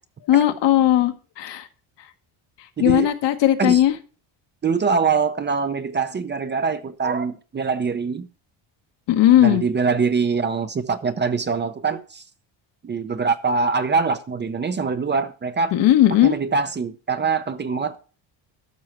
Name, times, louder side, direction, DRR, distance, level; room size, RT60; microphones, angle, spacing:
voice 1, 0.3-1.6 2.8-3.9 9.1-9.6 15.7-16.4, left 12 dB, 65° left, 1.3 m, -17 dB
voice 2, 2.8-3.1 3.6-3.8 4.6-8.3 9.4-12.2 12.8-15.7 16.2-18.0, right 5 dB, 25° right, 0.6 m, -23 dB
13.0 x 6.3 x 4.4 m
cardioid pair, 140°, 45 cm